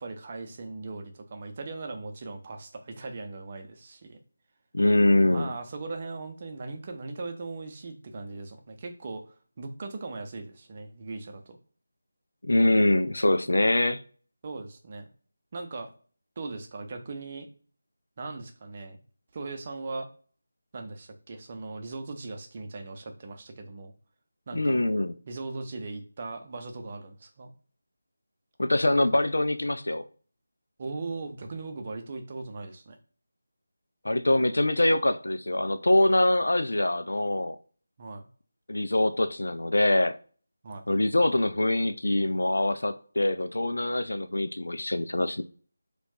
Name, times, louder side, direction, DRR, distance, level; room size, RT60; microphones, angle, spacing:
voice 1, 0.0-4.2 5.3-9.2 9.6-11.6 14.4-15.0 15.5-15.9 16.4-17.5 18.2-19.0 19.3-20.1 20.7-23.9 24.5-24.8 25.3-27.5 30.8-33.0 38.0-38.3 40.6-40.8, right 3 dB, 30° right, 0.6 m, -39 dB
voice 2, 4.7-5.5 12.4-14.0 24.5-25.1 28.6-30.0 34.0-37.6 38.7-40.2 40.9-45.4, left 1 dB, 65° left, 0.3 m, -24 dB
4.3 x 2.3 x 2.8 m
figure-of-eight pair, 160°, 0 cm